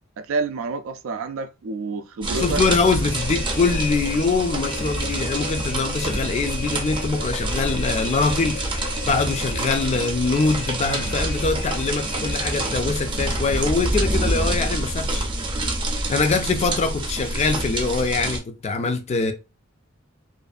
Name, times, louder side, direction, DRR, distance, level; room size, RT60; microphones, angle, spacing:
voice 1, 0.2-2.6 3.0-3.1, right 4 dB, 85° right, 0.4 m, -28 dB
sound 1, 2.2-18.4, right 1 dB, 25° right, 0.5 m, -27 dB
voice 2, 2.4-15.3 16.1-19.3, left 4 dB, 35° left, 0.4 m, -23 dB
sound 2, 3.1-13.9, left 4 dB, 60° left, 0.8 m, -37 dB
Sigh, 10.8-11.3, right 1 dB, 90° left, 1.3 m, -32 dB
2.5 x 2.4 x 2.3 m
head